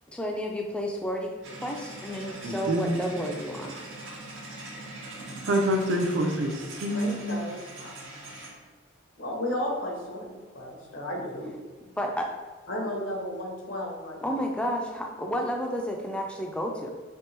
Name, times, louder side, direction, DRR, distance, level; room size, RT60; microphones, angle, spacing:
voice 1, 0.1-1.3 1.6-3.7 12.0-12.3 14.2-16.9, equal, 5° left, 0 dB, 0.4 m, -31 dB
sound 1, 1.4-8.6, right 2 dB, 85° right, 1.0 m, -42 dB
voice 2, 2.4-3.0 5.5-7.3, equal, 70° right, 3 dB, 0.6 m, -26 dB
voice 3, 6.9-7.9 9.2-11.5 12.7-14.4, left 1 dB, 80° left, -1 dB, 1.2 m, -34 dB
3.5 x 3.3 x 4.4 m, 1.4 s
head